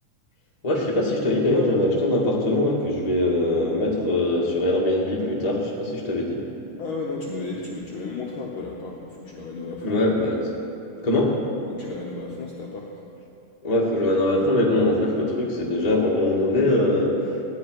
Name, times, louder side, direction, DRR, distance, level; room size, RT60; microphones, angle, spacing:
voice 1, 0.6-6.4 9.8-10.5 11.0-11.3 13.6-17.3, left 1 dB, 20° left, -3 dB, 1.0 m, -22 dB
voice 2, 6.8-10.1 11.7-12.9, left 3 dB, 65° left, -2 dB, 1.2 m, -33 dB
17.0 x 11.5 x 4.7 m, 2.7 s
omnidirectional pair, 3.7 m